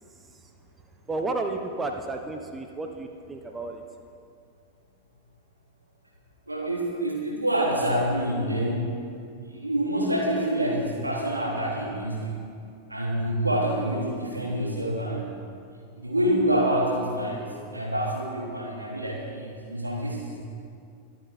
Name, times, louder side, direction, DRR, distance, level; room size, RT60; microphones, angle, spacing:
voice 1, 0.1-0.5 1.1-3.8, right 2 dB, 15° right, 4 dB, 1.1 m, -32 dB
voice 2, 6.5-8.9 9.4-12.4 12.9-15.3 16.0-17.5 17.7-20.4, right 1 dB, 85° right, -4 dB, 3.5 m, -27 dB
24.0 x 8.7 x 4.5 m, 2.4 s
figure-of-eight pair, 90°, 0 cm